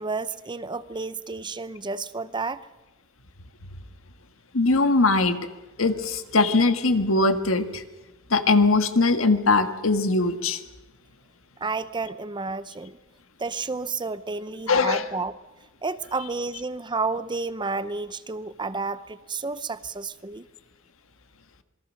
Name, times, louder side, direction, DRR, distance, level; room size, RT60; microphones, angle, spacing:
voice 1, 0.0-2.7 11.6-13.0 13.4-15.4 15.8-20.5, right 3 dB, 25° right, 14 dB, 0.7 m, -31 dB
voice 2, 4.5-5.4 5.8-7.8 8.3-10.6 14.7-15.0, left 3 dB, 80° left, 8 dB, 1.7 m, -21 dB
27.0 x 21.5 x 6.4 m, 1.1 s
head